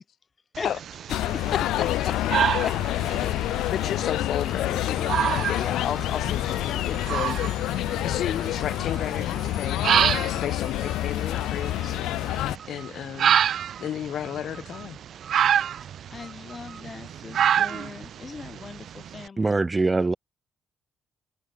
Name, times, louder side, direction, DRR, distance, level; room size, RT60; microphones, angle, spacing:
sound 1, 0.6-19.3, right 9 dB, 65° right, 2.2 m, -29 dB
sound 2, 1.1-12.6, left 15 dB, 90° left, 0.5 m, -27 dB
Alarm, 1.4-16.9, right 6 dB, 45° right, 7.6 m, -50 dB
voice 1, 1.5-2.2 2.6-7.4 8.0-9.8 10.2-12.0 12.7-13.4 13.8-15.0, left 10 dB, 70° left, 4.2 m, -33 dB
voice 2, 16.1-19.5, left 5 dB, 35° left, 6.2 m, -39 dB
voice 3, 19.4-20.2, right 3 dB, 20° right, 0.7 m, -22 dB
cardioid pair, 90°, 0 cm